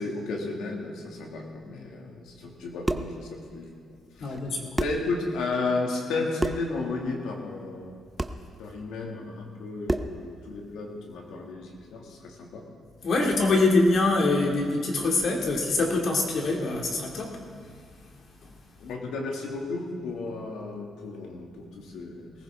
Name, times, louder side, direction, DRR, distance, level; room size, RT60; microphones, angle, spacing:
voice 1, 0.0-3.7 4.2-4.4 4.8-7.9 8.6-12.6 18.8-22.3, left 3 dB, 85° left, 0 dB, 2.2 m, -33 dB
sound 1, 2.6-3.2 4.4-4.5 4.8-5.1 6.4-6.7 8.2-8.4 9.9-10.2, right 1 dB, 15° right, 0.7 m, -29 dB
voice 2, 4.2-4.7 13.0-17.7, left 2 dB, 60° left, 0 dB, 2.4 m, -24 dB
19.0 x 15.0 x 3.6 m, 2.1 s
cardioid pair, 90°, 0 cm